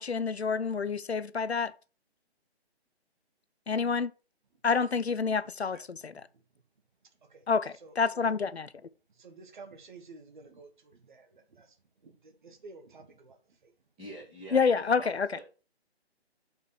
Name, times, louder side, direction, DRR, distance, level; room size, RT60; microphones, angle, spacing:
voice 1, 0.0-1.7 3.7-4.1 4.6-6.1 7.5-8.7 14.5-15.3, left 5 dB, 70° left, 0.8 m, -28 dB
voice 2, 9.1-11.8 12.0-13.7, right 4 dB, 45° right, 1.7 m, -52 dB
voice 3, 14.0-15.4, right 1 dB, ahead, 0.5 m, -45 dB
6.4 x 5.3 x 6.4 m
figure-of-eight pair, 145°, 33 cm